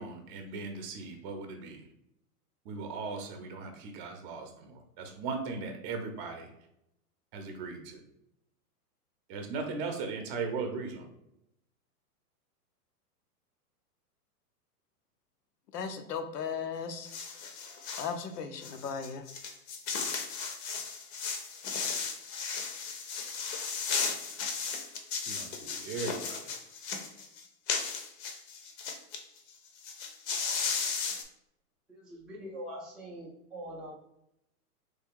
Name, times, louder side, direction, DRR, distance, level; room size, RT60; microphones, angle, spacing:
voice 1, 0.0-1.8 2.6-6.5 7.3-8.0 9.3-11.1 25.3-26.4, right 4 dB, 35° right, 5 dB, 0.7 m, -38 dB
voice 2, 15.7-17.1 18.0-19.2, left 6 dB, 85° left, 8 dB, 0.7 m, -36 dB
sound 1, 17.0-18.1 18.6-29.2 29.5-29.6 29.8-31.2, left 5 dB, 45° left, 0.7 m, -35 dB
voice 3, 31.9-34.0, equal, ahead, -7 dB, 0.4 m, -43 dB
3.3 x 2.3 x 3.6 m, 0.80 s
hypercardioid pair, 125°, 46 cm